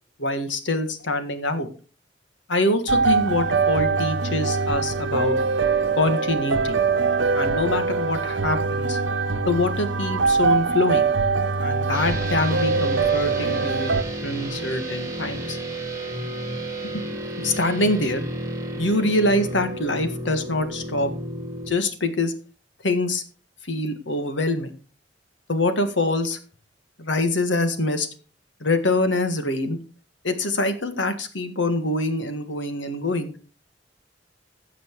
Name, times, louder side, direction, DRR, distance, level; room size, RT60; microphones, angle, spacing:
voice 1, 0.2-1.7 2.5-5.4 6.0-6.8 7.3-9.0 9.5-11.1 11.6-13.9 14.2-15.6 16.9-17.0 17.4-18.3 18.8-21.1 21.7-22.3 22.8-23.2 23.6-24.7 25.5-26.4 27.0-28.1 28.6-29.8 30.2-33.3, left 2 dB, 80° left, 8 dB, 1.8 m, -24 dB
sound 1, 2.9-14.0, right 4 dB, 80° right, 1.0 m, -23 dB
sound 2, 11.9-21.7, right 1 dB, 15° right, 3.7 m, -32 dB
15.5 x 6.1 x 4.7 m, 0.38 s
head